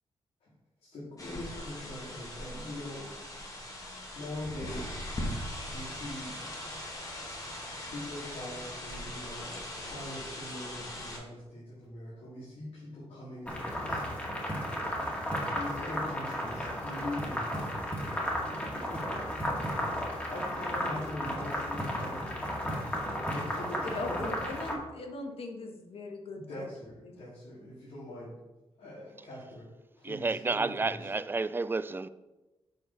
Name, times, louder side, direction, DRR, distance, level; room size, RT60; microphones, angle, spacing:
voice 1, 0.8-3.0 4.1-5.0 5.7-6.4 7.8-14.3 15.4-17.5 18.0-18.2 18.7-19.0 19.7-24.3 26.3-28.4 28.8-29.7 30.0-31.1, left 1 dB, 85° left, 3.2 m, -42 dB
sound 1, 1.2-11.2, left 1 dB, 35° left, 2.0 m, -40 dB
sound 2, 13.5-24.7, equal, 15° left, 2.1 m, -34 dB
voice 2, 24.4-26.6 27.0-27.1, left 2 dB, 65° left, 1.4 m, -40 dB
voice 3, 30.0-32.1, right 3 dB, 20° right, 0.3 m, -31 dB
7.8 x 5.0 x 5.8 m
wide cardioid pair, 125°, 10 cm